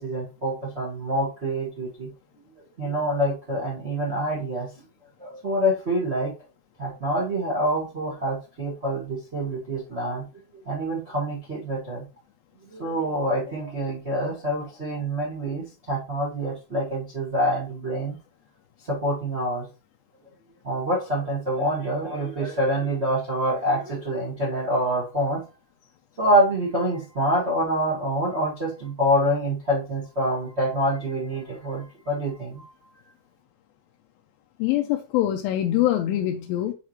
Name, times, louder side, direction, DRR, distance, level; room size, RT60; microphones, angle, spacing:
voice 1, 0.0-2.1 2.8-4.7 5.2-6.3 6.8-10.2 10.6-12.0 12.7-18.1 18.8-19.6 20.6-25.4 26.2-32.6, equal, 60° right, 0.6 m, -26 dB
voice 2, 34.6-36.7, left 13 dB, 80° left, 2.2 m, -24 dB
8.0 x 4.8 x 3.0 m
omnidirectional pair, 4.7 m